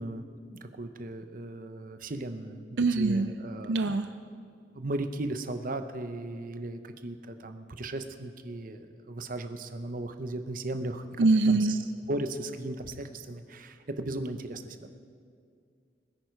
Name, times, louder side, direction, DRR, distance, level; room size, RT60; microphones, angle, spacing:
voice 1, 0.0-3.7 4.7-11.8 12.1-14.9, right 2 dB, 50° right, 8 dB, 0.8 m, -37 dB
voice 2, 2.8-3.3 3.7-4.1 11.2-11.8, right 3 dB, 80° right, 9 dB, 0.5 m, -23 dB
21.5 x 9.8 x 4.7 m, 2.3 s
head